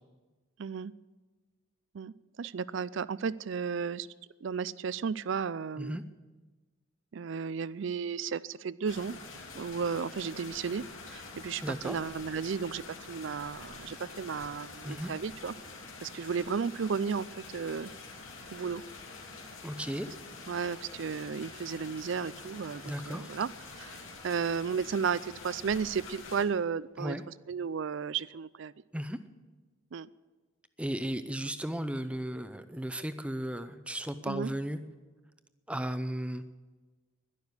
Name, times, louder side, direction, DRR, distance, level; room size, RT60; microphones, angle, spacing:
voice 1, 0.6-0.9 1.9-4.1 4.4-6.0 7.1-9.2 9.5-15.5 16.0-17.9 18.5-18.8 20.5-23.5 23.8-27.2 27.5-28.7 29.9-30.1 34.3-34.5, right 6 dB, 60° right, 19 dB, 0.4 m, -34 dB
sound 1, 8.9-26.5, left 3 dB, 70° left, 2.4 m, -47 dB
voice 2, 11.6-12.0 14.8-15.1 19.6-20.1 22.8-23.3 27.0-27.2 28.9-29.2 30.8-34.8 35.7-36.4, right 1 dB, 5° right, 11 dB, 0.6 m, -35 dB
11.5 x 11.5 x 8.1 m, 1.3 s
head